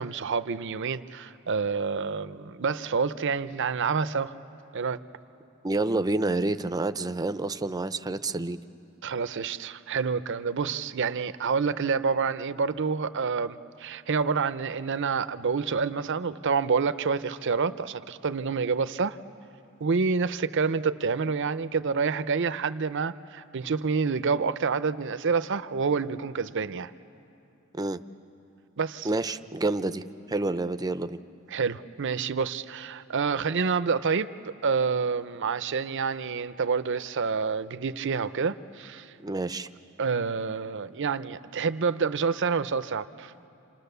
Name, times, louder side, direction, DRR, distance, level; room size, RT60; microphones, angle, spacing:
voice 1, 0.0-4.3 4.7-5.0 9.0-19.2 19.8-26.9 28.8-29.1 31.5-34.3 34.6-39.1 40.0-43.3, right 5 dB, 60° right, 13 dB, 0.6 m, -28 dB
voice 2, 5.6-8.6 27.7-28.0 29.0-31.2 39.2-39.7, right 2 dB, 20° right, 10 dB, 0.6 m, -28 dB
28.5 x 28.0 x 6.8 m, 2.8 s
head